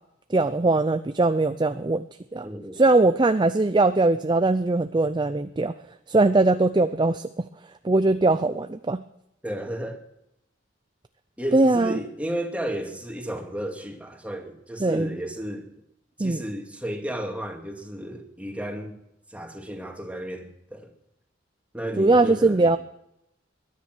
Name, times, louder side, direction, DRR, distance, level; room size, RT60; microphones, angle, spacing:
voice 1, 0.3-2.1 2.3-2.5 2.7-5.7 6.1-7.4 7.8-9.0 11.5-12.0 14.8-15.1 16.2-16.4 22.0-22.8, right 2 dB, 25° right, 11 dB, 0.5 m, -21 dB
voice 2, 2.4-2.8 9.4-10.0 11.4-15.7 16.2-19.0 19.3-20.9 21.7-22.7, right 1 dB, 5° right, 3 dB, 2.3 m, -33 dB
21.5 x 10.5 x 6.1 m, 0.82 s
head